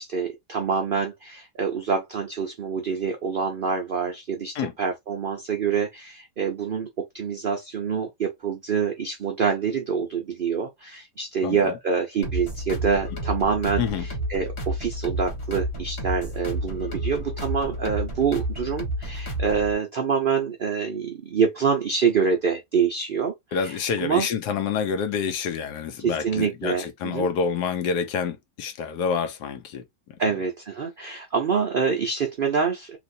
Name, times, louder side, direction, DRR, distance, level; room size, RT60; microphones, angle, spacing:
voice 1, 0.0-24.3 26.0-27.3 30.2-33.0, right 6 dB, 80° right, 0.4 m, -26 dB
voice 2, 11.4-11.7 13.8-14.1 23.5-29.8, left 6 dB, 80° left, 1.3 m, -27 dB
sound 1, 12.2-19.7, right 1 dB, 40° left, 1.4 m, -30 dB
3.3 x 2.9 x 2.6 m
omnidirectional pair, 1.8 m